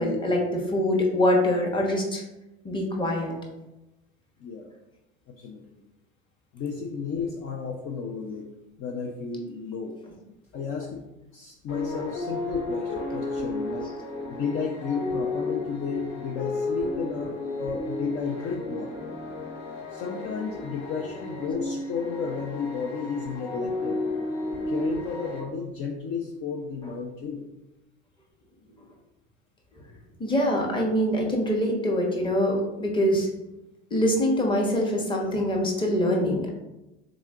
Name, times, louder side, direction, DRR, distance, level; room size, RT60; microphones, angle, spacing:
voice 1, 0.0-2.0 2.6-3.4 11.9-12.0 30.2-33.3 33.9-36.5, left 1 dB, 15° left, 0 dB, 1.0 m, -24 dB
voice 2, 4.4-4.7 5.4-5.8 6.5-8.5 8.8-10.0 10.5-11.0 11.3-13.9 14.3-19.3 19.9-24.0 24.7-27.4, left 5 dB, 40° left, 1 dB, 0.6 m, -33 dB
sound 1, 11.7-25.4, left 2 dB, 60° left, 1.4 m, -33 dB
3.8 x 3.1 x 3.6 m, 0.96 s
hypercardioid pair, 80°, 34 cm